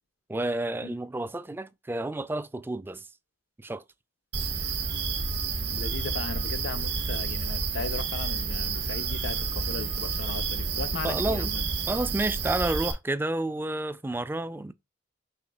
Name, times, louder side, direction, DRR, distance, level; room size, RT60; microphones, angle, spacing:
voice 1, 0.3-3.0 3.6-3.8 11.0-11.5 11.9-14.7, right 2 dB, 10° right, 0.3 m, -30 dB
sound 1, 4.3-12.9, right 4 dB, 70° right, 0.9 m, -30 dB
voice 2, 5.5-11.6, left 4 dB, 85° left, 0.5 m, -37 dB
5.6 x 3.2 x 2.3 m
head